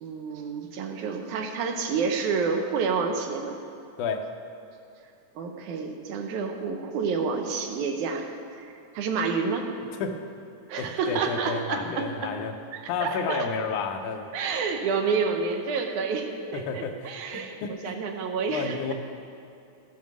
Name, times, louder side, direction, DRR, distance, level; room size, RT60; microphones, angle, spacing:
voice 1, 0.0-3.6 5.4-9.7 10.7-12.3 12.7-13.5 14.3-18.9, right 5 dB, 80° right, 4 dB, 2.3 m, -29 dB
voice 2, 10.8-12.5 12.9-14.3 16.5-18.0 18.5-18.9, left 5 dB, 85° left, 5 dB, 2.2 m, -31 dB
14.0 x 7.3 x 6.2 m, 2.6 s
omnidirectional pair, 3.6 m